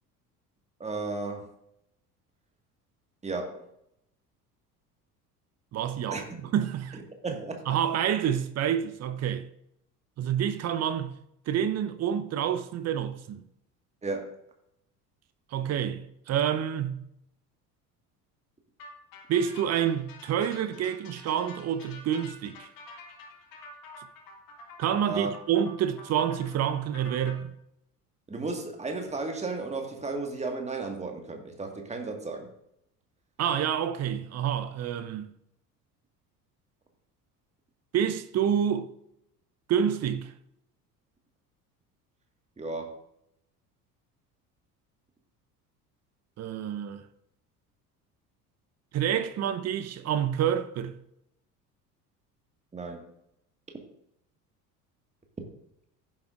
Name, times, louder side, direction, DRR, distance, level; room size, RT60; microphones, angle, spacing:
voice 1, 0.8-1.5 3.2-3.7 6.1-6.2 6.9-7.7 14.0-14.3 25.0-25.3 28.3-32.5 42.6-43.0 52.7-53.0, right 3 dB, 15° right, 1.7 m, -34 dB
voice 2, 5.7-7.0 7.7-9.5 10.2-11.1 11.5-13.4 15.5-17.0 19.3-22.7 24.8-27.5 33.4-35.3 37.9-38.9 39.7-40.3 46.4-47.0 48.9-51.0, right 9 dB, 35° right, 0.9 m, -28 dB
sound 1, 18.8-27.4, left 2 dB, 45° left, 1.9 m, -48 dB
15.5 x 7.4 x 2.5 m
figure-of-eight pair, 60°, 47 cm